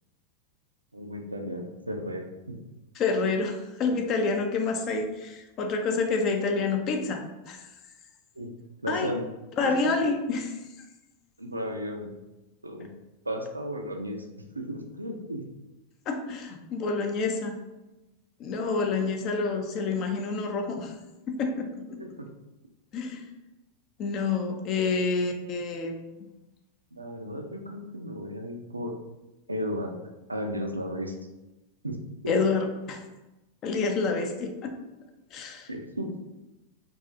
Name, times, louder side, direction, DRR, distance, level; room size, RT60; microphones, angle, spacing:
voice 1, 0.9-2.6 8.4-8.5 8.8-9.2 9.6-9.7 11.4-12.1 12.6-12.9 13.3-14.2 14.5-15.4 22.0-22.3 24.9-25.0 26.9-28.9 29.5-30.0 30.3-31.2 31.8-32.0 32.2-32.3 35.7-36.1, equal, 85° right, 3 dB, 0.4 m, -34 dB
voice 2, 3.0-7.7 8.9-9.1 9.6-10.6 16.1-17.6 18.4-20.9 21.3-22.0 22.9-23.2 24.0-26.1 32.3-33.0 33.6-34.7 35.3-35.7, left 4 dB, 35° left, 4 dB, 0.5 m, -28 dB
4.7 x 2.6 x 2.6 m, 1.0 s
figure-of-eight pair, 90°, 0 cm